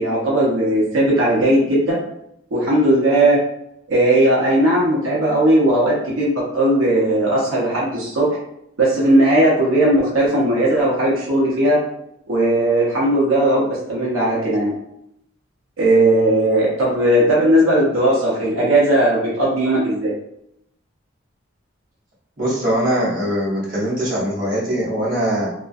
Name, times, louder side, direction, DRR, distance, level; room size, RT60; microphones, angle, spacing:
voice 1, 0.0-2.0 2.5-3.4 3.9-8.3 8.8-11.8 12.3-14.7 15.8-20.1, right 1 dB, 85° right, -5 dB, 0.6 m, -17 dB
voice 2, 22.4-25.5, equal, 45° right, -8 dB, 0.8 m, -21 dB
2.3 x 2.1 x 2.5 m, 0.78 s
head